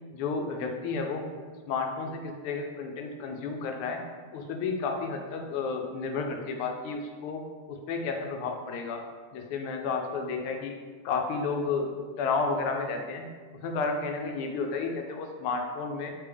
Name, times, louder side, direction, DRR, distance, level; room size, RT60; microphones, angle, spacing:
voice 1, 0.1-1.2 1.7-4.0 4.3-7.4 7.7-9.0 9.3-10.8 11.0-11.9 12.2-13.2 13.6-16.1, left 4 dB, 90° left, 3 dB, 1.5 m, -31 dB
4.1 x 3.3 x 3.4 m, 1.6 s
omnidirectional pair, 2.4 m